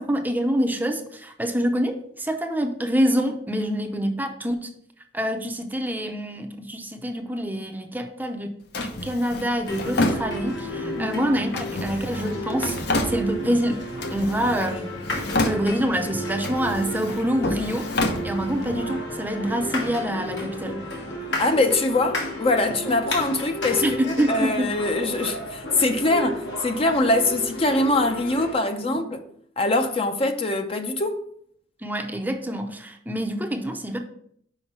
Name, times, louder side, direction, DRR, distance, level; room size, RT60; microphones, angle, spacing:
voice 1, 0.0-4.7 5.1-12.8 13.0-13.8 14.1-14.9 15.4-20.9 22.6-22.8 23.8-24.7 28.8-29.0 31.8-34.0, equal, 10° right, 0.6 m, -26 dB
Drawer open or close, 8.7-10.8 11.5-13.6 14.0-14.8 15.0-16.0 16.4-18.8, left 2 dB, 65° left, 0.8 m, -29 dB
sound 1, 9.7-28.5, left 1 dB, 80° left, 1.8 m, -32 dB
voice 2, 21.4-29.2 29.6-31.2, left 2 dB, 35° left, 0.6 m, -23 dB
5.7 x 5.1 x 4.6 m
head